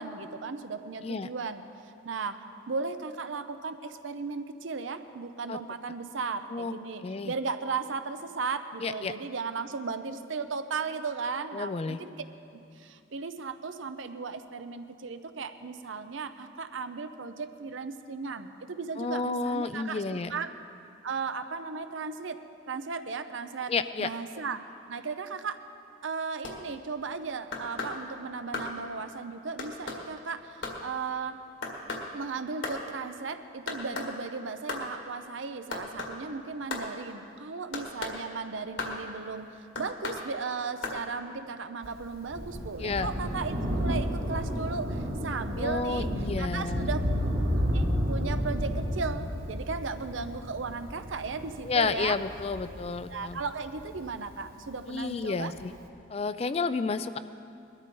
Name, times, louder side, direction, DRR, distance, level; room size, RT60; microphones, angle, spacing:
voice 1, 0.0-1.6 2.0-12.2 12.5-20.6 21.0-22.4 22.7-23.7 24.0-25.6 26.0-31.4 32.1-46.1 46.4-47.1 47.6-52.2 53.1-55.5, right 4 dB, 75° right, 10 dB, 0.7 m, -36 dB
voice 2, 7.0-7.3 8.8-9.1 11.5-12.0 19.0-20.3 23.7-24.1 42.8-43.1 45.6-46.9 51.7-53.4 54.9-55.7 56.1-57.2, left 4 dB, 30° left, 12 dB, 0.3 m, -31 dB
sound 1, 26.4-26.6 27.5-28.0 28.5-28.7 29.6-30.0 30.6-30.8 31.6-32.1 32.6-32.8 33.7-34.1 34.7-34.9 35.7-36.1 36.7-36.9 37.7-38.1 38.8-39.0 39.7-40.2 40.8-41.0, left 3 dB, 70° left, 1.8 m, -35 dB
Thunder, 41.8-54.7 55.6-55.7, equal, 50° right, 1.4 m, -32 dB
20.5 x 13.0 x 3.8 m, 2.6 s
head